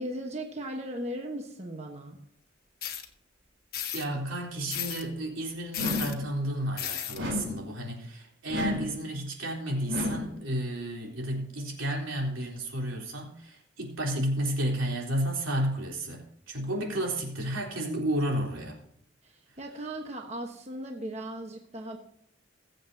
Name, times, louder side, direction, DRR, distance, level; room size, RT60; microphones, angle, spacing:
voice 1, 0.0-2.2 19.2-22.0, right 1 dB, 35° right, 2 dB, 1.2 m, -37 dB
sound 1, 2.8-3.0 3.7-4.0 4.7-5.0 5.7-6.1 6.8-7.2, left 10 dB, 50° left, 1.2 m, -34 dB
voice 2, 3.9-18.8, right 1 dB, 85° right, -1 dB, 3.7 m, -32 dB
sound 2, 5.8-6.3 7.2-7.7 8.5-9.0 9.9-10.4, left 2 dB, 65° right, 4.1 m, -32 dB
21.5 x 7.8 x 2.8 m, 0.71 s
head